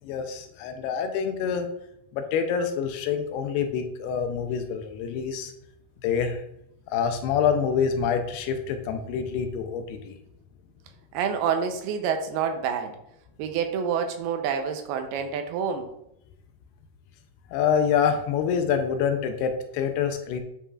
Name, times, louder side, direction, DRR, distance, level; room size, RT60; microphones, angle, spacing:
voice 1, 0.0-1.7 2.1-5.5 6.0-6.4 6.9-10.2 17.5-20.4, left 7 dB, 80° left, 6 dB, 2.6 m, -26 dB
voice 2, 11.1-13.0 13.4-15.9, right 7 dB, 85° right, 6 dB, 2.5 m, -27 dB
9.8 x 5.5 x 2.4 m, 0.79 s
omnidirectional pair, 4.6 m